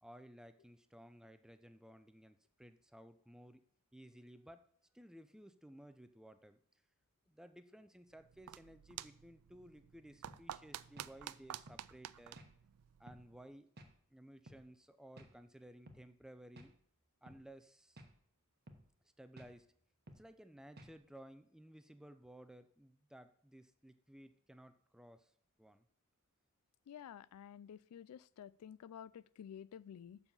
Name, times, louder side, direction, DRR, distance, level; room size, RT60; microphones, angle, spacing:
voice 1, 0.0-3.6 3.9-4.6 4.9-6.6 7.3-12.4 13.0-13.7 14.1-16.7 17.2-18.0 19.2-19.7 20.1-25.3 25.6-25.8, right 1 dB, 5° right, 10 dB, 0.5 m, -57 dB
sound 1, 8.1-13.5, right 11 dB, 75° right, 0.4 m, -51 dB
sound 2, 10.3-10.5 11.0-11.1 11.7-11.8 12.4-12.5 13.1-13.3 13.8-13.9 14.5-14.6 15.2-15.4 15.9-16.0 16.6-16.7 17.3-17.4 18.0-18.2 18.7-18.9 19.4-19.5 20.1-20.3 20.8-21.0, right 1 dB, 45° right, 1.0 m, -56 dB
voice 2, 26.9-30.2, left 9 dB, 80° left, 20 dB, 0.3 m, -52 dB
7.1 x 5.5 x 6.9 m, 0.62 s
head